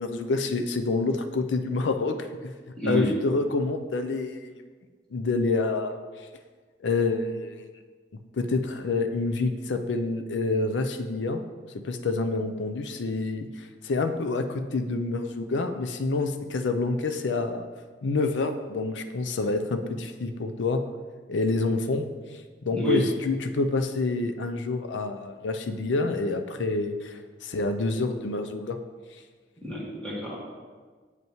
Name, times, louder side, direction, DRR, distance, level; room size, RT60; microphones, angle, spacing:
voice 1, 0.0-2.5 2.9-4.6 5.1-6.0 6.8-7.7 8.3-11.4 11.8-17.6 18.0-20.8 21.3-22.1 22.6-28.8, left 3 dB, 90° left, 7 dB, 0.5 m, -27 dB
voice 2, 2.7-3.1 22.7-23.0 29.6-30.4, left 1 dB, 5° left, -7 dB, 1.5 m, -29 dB
7.7 x 5.5 x 3.0 m, 1.4 s
head